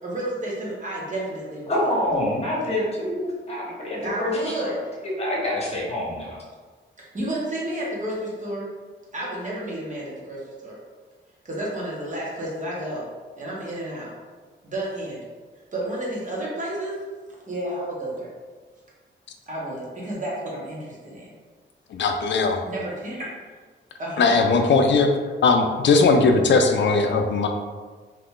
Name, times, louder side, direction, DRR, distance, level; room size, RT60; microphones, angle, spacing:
voice 1, 0.0-1.8 4.0-4.7 7.0-8.7 9.1-10.8 11.4-13.1 13.4-14.1 14.6-15.2 15.7-17.0 17.5-18.3 19.5-21.3 22.6-23.3 24.0-24.3, right 1 dB, 40° right, -5 dB, 1.0 m, -31 dB
voice 2, 1.7-4.7 5.0-6.4, left 1 dB, 30° left, -4 dB, 1.0 m, -26 dB
voice 3, 21.9-22.6 24.2-25.1 25.4-27.5, left 4 dB, 65° left, 5 dB, 0.4 m, -19 dB
2.8 x 2.4 x 3.6 m, 1.4 s
wide cardioid pair, 110°, 20 cm